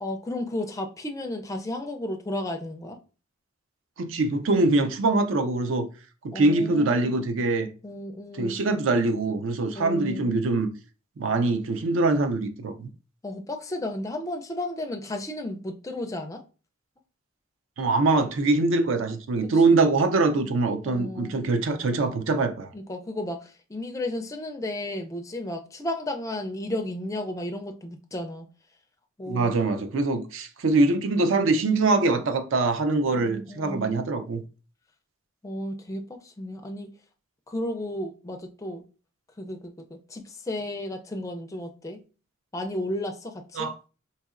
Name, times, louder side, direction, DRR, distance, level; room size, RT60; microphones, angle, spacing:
voice 1, 0.0-3.0 6.3-7.2 7.8-8.6 9.7-10.3 13.2-16.4 19.5-19.8 20.8-21.4 22.7-28.5 29.2-29.6 33.1-33.9 35.4-36.9 37.5-38.8 39.4-42.0 42.5-43.7, left 1 dB, 15° left, 0.4 m, -33 dB
voice 2, 4.0-5.9 6.2-7.7 8.4-10.7 11.2-12.9 17.8-22.7 29.3-34.4 43.6-43.7, right 3 dB, 65° right, 0.4 m, -23 dB
4.0 x 2.7 x 2.4 m
head